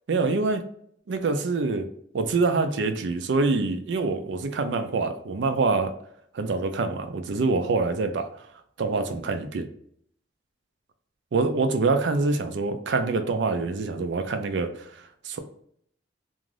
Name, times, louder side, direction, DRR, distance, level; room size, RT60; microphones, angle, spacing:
voice 1, 0.1-0.6 1.1-1.9 2.1-5.9 6.3-8.2 8.8-9.7 11.3-14.7 15.2-15.4, right 3 dB, 80° right, 7 dB, 0.4 m, -25 dB
2.5 x 2.4 x 3.2 m, 0.65 s
head